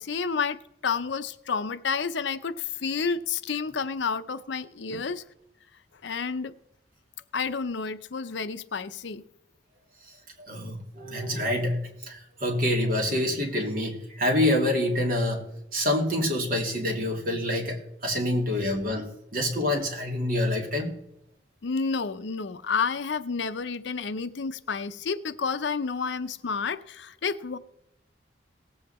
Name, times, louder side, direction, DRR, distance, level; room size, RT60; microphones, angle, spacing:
voice 1, 0.0-5.2 6.0-6.5 7.3-9.2 21.6-27.6, left 5 dB, 70° left, 0.6 m, -30 dB
voice 2, 10.4-15.5 15.7-20.9, left 1 dB, 45° right, 2.4 m, -27 dB
18.0 x 8.0 x 4.2 m
head